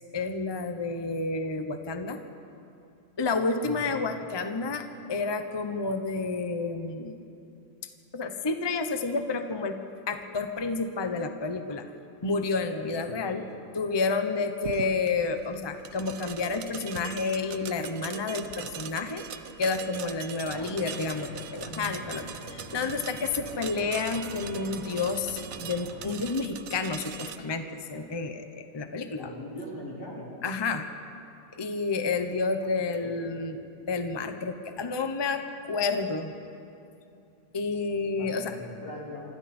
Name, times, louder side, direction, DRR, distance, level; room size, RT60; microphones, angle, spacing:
voice 1, 0.1-2.2 3.2-7.2 8.1-9.8 10.1-11.8 12.2-13.4 13.7-19.2 19.6-29.3 30.4-30.8 31.5-33.6 33.9-36.3 37.5-38.5, left 4 dB, 20° left, 7 dB, 0.8 m, -30 dB
voice 2, 3.6-4.0 13.1-13.4 29.2-30.3 32.6-33.2 38.1-39.2, left 1 dB, 85° left, -7 dB, 6.5 m, -41 dB
sound 1, 14.6-27.4, right 8 dB, 55° right, 1.1 m, -41 dB
sound 2, 20.4-26.1, equal, 25° right, 5.2 m, -45 dB
26.0 x 25.5 x 4.4 m, 2.7 s
omnidirectional pair, 1.9 m